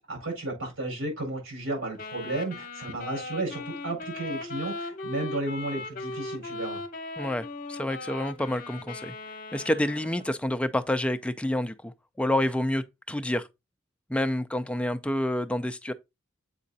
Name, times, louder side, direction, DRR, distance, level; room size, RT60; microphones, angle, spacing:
voice 1, 0.1-6.8, right 2 dB, 85° right, 4.3 m, -33 dB
Wind instrument woodwind instrument, 2.0-10.5, left 2 dB, 45° left, 0.9 m, -38 dB
voice 2, 7.2-9.1 9.5-13.5 14.1-15.9, left 1 dB, 5° left, 0.4 m, -28 dB
7.4 x 4.9 x 2.7 m
head